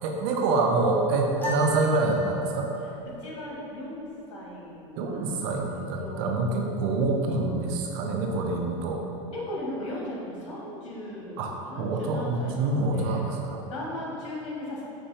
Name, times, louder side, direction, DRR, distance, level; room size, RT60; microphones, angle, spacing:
voice 1, 0.0-2.7 5.0-9.0 11.4-13.6, right 3 dB, 65° right, 1 dB, 0.6 m, -26 dB
sound 1, 1.4-2.9, left 1 dB, 10° left, 0.8 m, -35 dB
voice 2, 3.2-5.4 6.0-6.3 9.3-11.4 11.7-13.3 13.7-14.8, left 1 dB, 80° left, -4 dB, 1.3 m, -37 dB
5.9 x 2.6 x 3.2 m, 3.0 s
supercardioid pair, 115°, 16 cm